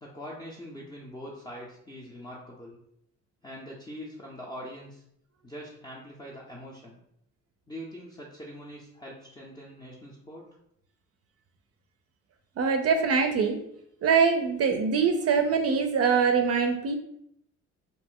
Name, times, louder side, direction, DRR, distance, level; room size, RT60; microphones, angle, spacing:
voice 1, 0.0-2.8 3.4-5.0 5.4-7.0 7.7-10.5, equal, 15° left, -4 dB, 0.5 m, -43 dB
voice 2, 12.6-13.6 14.0-17.0, right 5 dB, 55° right, 5 dB, 0.4 m, -23 dB
2.5 x 2.0 x 3.6 m, 0.73 s
cardioid pair, 90°, 30 cm